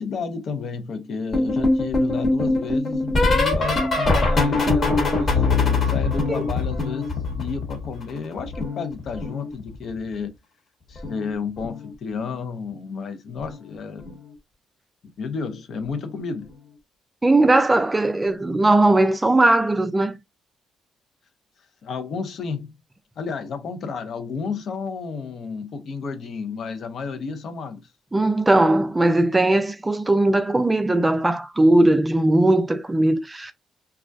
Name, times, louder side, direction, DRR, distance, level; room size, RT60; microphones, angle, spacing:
voice 1, 0.0-10.3 10.9-14.2 15.2-16.5 21.8-22.7 23.2-27.8, left 5 dB, 60° left, 0.6 m, -31 dB
sound 1, 1.3-8.1 8.4-10.0 11.0-11.3 11.6-11.9 13.5-13.7 14.1-14.3 15.9-16.0, left 3 dB, 45° left, 1.1 m, -23 dB
voice 2, 17.2-20.2 28.1-33.5, right 2 dB, 15° right, 0.4 m, -19 dB
2.3 x 2.1 x 2.5 m
cardioid pair, 90°, 0 cm